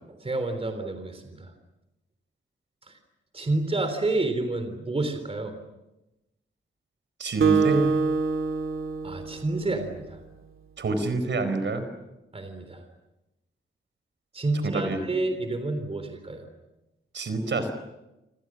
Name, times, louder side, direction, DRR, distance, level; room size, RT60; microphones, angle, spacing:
voice 1, 0.1-1.5 2.9-3.0 3.3-5.6 9.0-10.2 12.3-12.8 14.3-16.5, right 2 dB, 30° right, 7 dB, 3.6 m, -29 dB
voice 2, 7.2-8.0 10.8-11.9 14.6-15.0 17.1-17.7, right 2 dB, 65° right, 9 dB, 4.6 m, -27 dB
Acoustic guitar, 7.4-10.2, right 5 dB, 80° right, 2.1 m, -26 dB
28.5 x 27.5 x 6.3 m, 0.95 s
wide cardioid pair, 160°, 21 cm